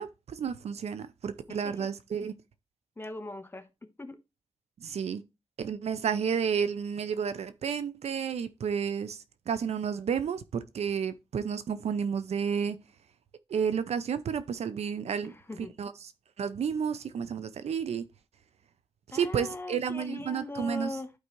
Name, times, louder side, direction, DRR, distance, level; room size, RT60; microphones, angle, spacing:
voice 1, 0.0-2.3 4.8-5.2 5.6-12.8 13.5-15.3 15.8-15.9 16.4-18.0 19.1-20.9, right 7 dB, 85° right, 0.6 m, -31 dB
voice 2, 1.5-1.9 3.0-3.7 4.0-4.2 15.2-15.7 19.1-21.1, left 2 dB, 20° left, 1.1 m, -40 dB
11.5 x 4.7 x 3.0 m
cardioid pair, 80°, 11 cm